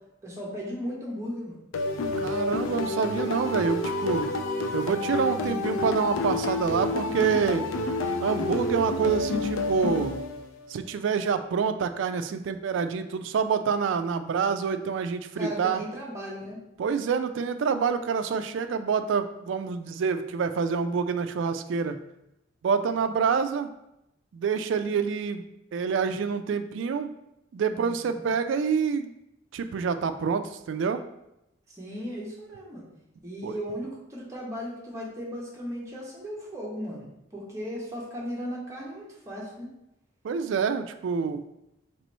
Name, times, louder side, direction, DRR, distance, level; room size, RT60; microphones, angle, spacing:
voice 1, 0.2-1.6 15.3-16.6 27.6-28.2 31.7-32.9 33.2-37.0 37.3-39.7, equal, 15° right, -5 dB, 1.0 m, -36 dB
sound 1, 1.7-10.7, left 2 dB, 80° left, 0.4 m, -29 dB
voice 2, 2.2-4.2 4.7-7.6 8.2-10.2 10.7-15.8 16.8-22.0 22.6-23.7 24.3-25.4 25.7-27.1 27.5-29.1 29.5-31.0 33.4-33.6 40.2-41.4, right 6 dB, 65° right, 9 dB, 0.3 m, -27 dB
3.0 x 3.0 x 4.2 m, 0.85 s
head